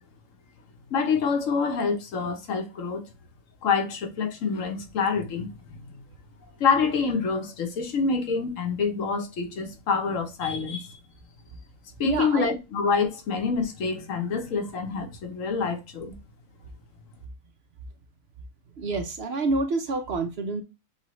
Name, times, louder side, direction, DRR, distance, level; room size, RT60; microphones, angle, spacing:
voice 1, 0.9-3.1 3.6-5.8 6.6-11.0 12.0-16.2, left 5 dB, 65° left, 1.2 m, -26 dB
voice 2, 12.0-12.5 18.8-20.6, right 3 dB, 55° right, 0.8 m, -27 dB
6.8 x 2.4 x 3.0 m
omnidirectional pair, 1.5 m